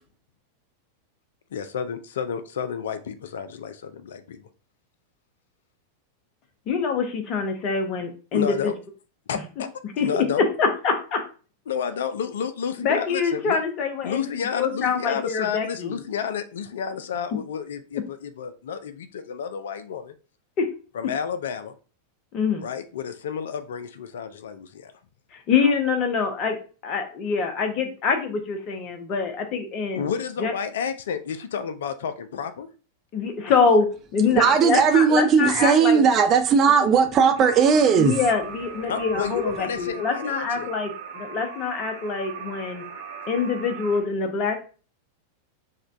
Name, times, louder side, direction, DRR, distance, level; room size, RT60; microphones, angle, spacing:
voice 1, 1.5-4.5 8.3-8.7 9.3-9.7 10.0-10.4 11.7-13.6 14.0-20.1 20.9-21.7 22.6-24.9 30.0-32.7 38.8-40.7, left 7 dB, 60° left, 11 dB, 0.4 m, -31 dB
voice 2, 6.7-8.7 10.0-10.1 10.6-11.2 12.8-14.2 14.5-16.0 20.6-20.7 22.3-22.7 25.3-26.6 26.8-30.1 30.4-30.5 33.1-33.9 34.1-36.0 38.0-42.8 43.3-44.6, left 5 dB, 35° left, 5 dB, 0.7 m, -25 dB
voice 3, 34.3-38.1, right 6 dB, 30° right, 6 dB, 0.5 m, -18 dB
sound 1, 37.3-44.0, right 7 dB, 60° right, 0.8 m, -38 dB
4.9 x 2.2 x 2.5 m, 0.37 s
figure-of-eight pair, 90°, 0 cm